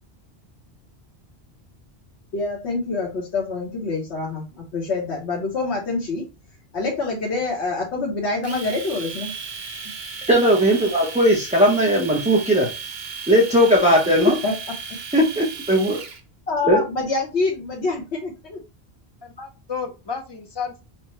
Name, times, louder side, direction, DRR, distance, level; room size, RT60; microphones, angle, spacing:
voice 1, 2.3-6.2 6.7-9.3 14.4-14.5 16.5-18.6, left 3 dB, 85° left, -2 dB, 1.3 m, -26 dB
Domestic sounds home sounds, 8.4-16.2, right 5 dB, 70° right, 1.0 m, -35 dB
voice 2, 10.3-12.7 13.3-14.3 15.1-16.0 16.7-16.8, equal, 5° right, -4 dB, 0.8 m, -18 dB
voice 3, 19.2-20.8, left 6 dB, 30° left, 5 dB, 0.6 m, -32 dB
5.7 x 2.2 x 3.1 m, 0.29 s
omnidirectional pair, 1.1 m